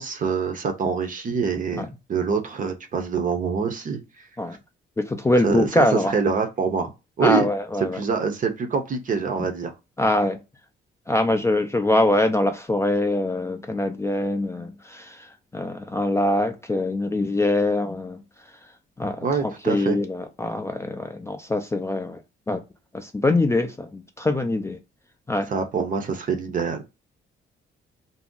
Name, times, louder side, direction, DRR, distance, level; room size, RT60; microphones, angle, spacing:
voice 1, 0.0-4.0 5.4-6.9 7.2-7.5 7.9-9.7 19.2-20.0 25.5-26.8, right 5 dB, 40° right, 0.6 m, -25 dB
voice 2, 5.0-6.2 7.2-8.0 10.0-10.4 11.1-18.2 19.0-22.2 22.5-22.6 22.9-24.8 25.3-25.5, left 2 dB, 15° left, 0.3 m, -23 dB
2.6 x 2.0 x 3.6 m
cardioid pair, 110°, 20 cm